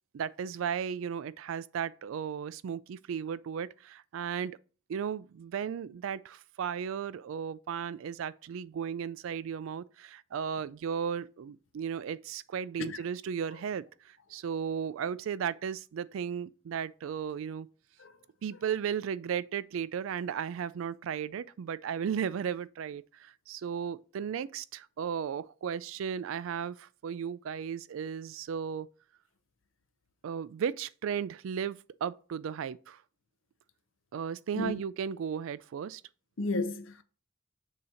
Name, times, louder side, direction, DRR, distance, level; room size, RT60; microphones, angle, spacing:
voice 1, 0.1-4.6 4.9-17.7 18.4-28.9 30.2-33.0 34.1-36.0, right 7 dB, 70° right, 0.3 m, -35 dB
voice 2, 36.4-37.0, left 2 dB, 65° left, 0.6 m, -33 dB
6.8 x 2.8 x 4.9 m
head